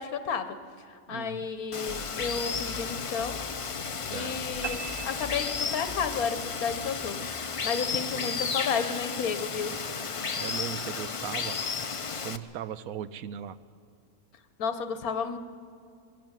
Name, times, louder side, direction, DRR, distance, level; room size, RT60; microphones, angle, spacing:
voice 1, 0.0-3.4 4.1-7.2 7.6-9.8 14.6-15.4, left 6 dB, 80° left, 10 dB, 1.5 m, -32 dB
voice 2, 1.1-1.5 4.1-4.6 8.1-8.5 10.4-11.6 12.2-13.6, right 10 dB, 80° right, 14 dB, 1.1 m, -38 dB
Water, 1.7-12.4, left 5 dB, 55° left, 0.3 m, -33 dB
sound 1, 1.9-7.3, left 4 dB, 35° left, 1.8 m, -46 dB
sound 2, 4.6-6.2, right 6 dB, 35° right, 0.4 m, -40 dB
23.0 x 13.5 x 8.9 m, 2.3 s
omnidirectional pair, 1.5 m